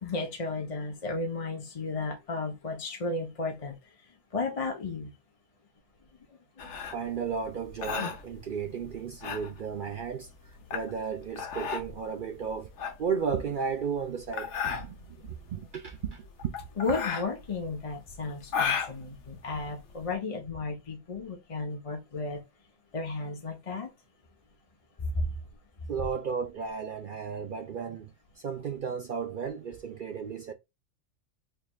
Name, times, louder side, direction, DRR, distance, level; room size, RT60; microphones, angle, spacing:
voice 1, 0.0-3.8 4.3-5.1 6.6-6.7 16.8-22.4 22.9-23.9 25.0-25.3, left 3 dB, 35° left, 0.7 m, -33 dB
sound 1, 6.6-20.1, left 6 dB, 70° left, 1.1 m, -35 dB
voice 2, 6.9-10.3 10.7-12.7 13.0-16.5 25.9-30.5, right 6 dB, 60° right, 0.6 m, -34 dB
4.3 x 3.1 x 2.2 m
omnidirectional pair, 1.3 m